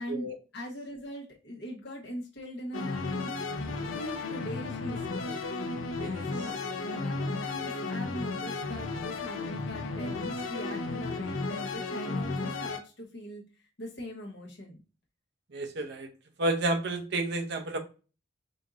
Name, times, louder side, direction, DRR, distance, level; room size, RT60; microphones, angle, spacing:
voice 1, 0.0-3.3 3.7-5.4 6.3-6.6 6.8-13.4 13.8-14.8, equal, 60° left, 1.2 m, -41 dB
sound 1, 2.7-12.8, left 3 dB, 90° left, 0.6 m, -34 dB
voice 2, 15.5-16.1 16.4-17.8, right 2 dB, 60° right, 0.7 m, -30 dB
5.0 x 2.7 x 2.5 m
head